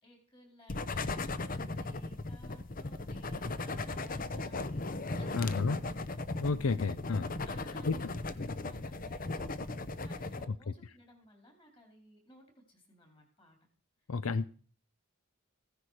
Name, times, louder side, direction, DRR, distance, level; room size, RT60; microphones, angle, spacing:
voice 1, 0.0-5.8 7.2-8.0 8.6-13.6, equal, 25° left, 4.0 m, -59 dB
sound 1, 0.7-10.5, left 2 dB, 40° left, 0.8 m, -37 dB
voice 2, 5.3-5.8 6.4-7.3 7.9-8.0 8.4-8.5 10.5-10.6 14.1-14.5, left 4 dB, 80° left, 0.6 m, -31 dB
15.5 x 10.0 x 4.9 m
head